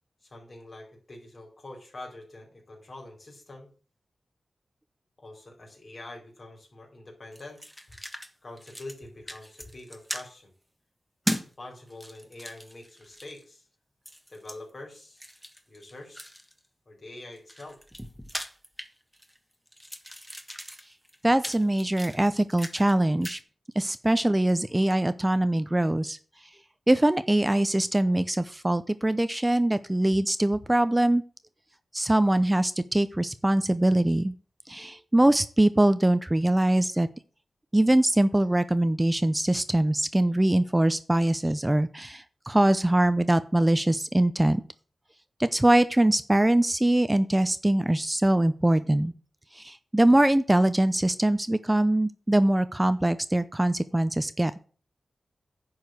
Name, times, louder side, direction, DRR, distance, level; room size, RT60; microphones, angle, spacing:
voice 1, 0.2-3.7 5.2-7.6 8.4-10.5 11.3-13.7 14.3-16.3 16.9-17.8, left 2 dB, 50° left, 0 dB, 4.7 m, -45 dB
sound 1, 7.3-8.3 8.6-9.0 9.3-10.3 11.3-11.5 11.9-13.4 14.1-14.6 15.2-16.6 17.2-19.4 19.7-22.9 23.2-23.4, equal, ahead, 1.5 m, -38 dB
voice 2, 21.2-23.4 23.8-26.2 26.9-31.2 31.9-34.3 34.7-37.1 37.7-44.6 45.4-49.1 49.5-54.5, right 1 dB, 15° right, 13 dB, 0.6 m, -23 dB
10.5 x 4.8 x 8.0 m, 0.40 s
cardioid pair, 65°, 0 cm